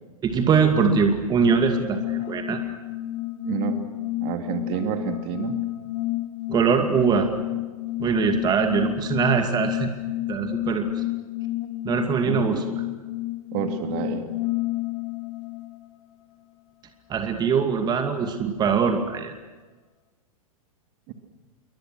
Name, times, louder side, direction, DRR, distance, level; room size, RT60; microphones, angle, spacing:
voice 1, 0.2-2.6 6.5-7.3 8.0-9.9 10.3-11.0 11.8-12.6 17.1-19.3, right 6 dB, 20° right, 5 dB, 2.4 m, -22 dB
sound 1, 1.5-15.9, left 16 dB, 45° left, 1.4 m, -30 dB
voice 2, 3.4-3.8 4.2-5.6 8.7-8.8 12.3-12.7 13.5-14.2 21.1-21.2, right 10 dB, 40° right, 6 dB, 2.5 m, -29 dB
28.0 x 23.5 x 6.4 m, 1.3 s
figure-of-eight pair, 100°, 18 cm